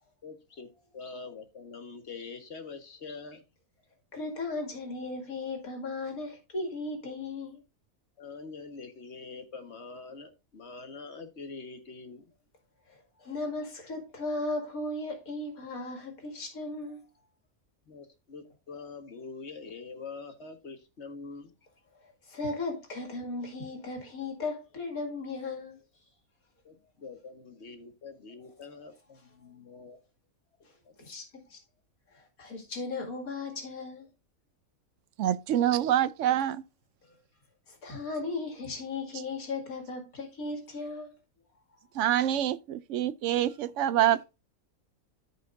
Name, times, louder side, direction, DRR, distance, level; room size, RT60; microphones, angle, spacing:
voice 1, 0.2-0.7 0.9-3.5 8.2-12.2 17.9-21.5 26.6-30.0 30.8-31.1, left 4 dB, 50° left, 1.6 m, -44 dB
voice 2, 4.1-7.6 13.2-17.0 22.3-25.8 31.0-31.6 32.4-34.1 37.7-41.1, left 3 dB, 90° left, 2.6 m, -36 dB
voice 3, 35.2-36.6 41.9-44.2, right 11 dB, 70° right, 0.8 m, -26 dB
14.0 x 5.2 x 2.5 m
omnidirectional pair, 1.5 m